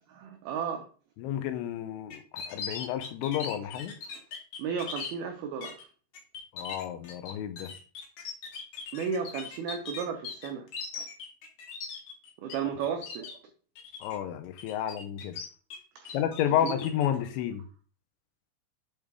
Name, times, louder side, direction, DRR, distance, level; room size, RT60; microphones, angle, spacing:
voice 1, 0.2-0.9 4.6-5.9 8.9-10.7 10.9-11.1 12.4-13.3 16.0-16.2 16.6-16.8, right 7 dB, 85° right, 2.1 m, -34 dB
voice 2, 1.2-3.9 6.5-7.7 14.0-15.4 16.1-17.6, left 10 dB, 85° left, 3.0 m, -31 dB
sound 1, 2.1-5.1 5.6-5.8 6.1-12.6 12.8-13.3 13.8-14.2 14.6-15.8 16.1-17.1, left 5 dB, 70° left, 1.9 m, -39 dB
8.2 x 3.6 x 4.6 m
omnidirectional pair, 5.5 m